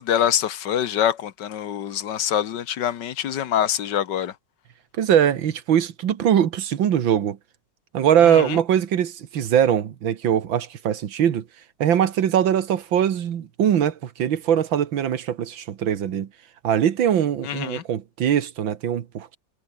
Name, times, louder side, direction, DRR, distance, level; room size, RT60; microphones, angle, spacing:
voice 1, 0.0-4.3 8.2-8.6 17.4-17.8, left 10 dB, 65° left, 1.6 m, -25 dB
voice 2, 5.0-7.4 7.9-11.4 11.8-16.3 16.6-19.4, right 9 dB, 90° right, 2.1 m, -21 dB
omnidirectional pair, 2.1 m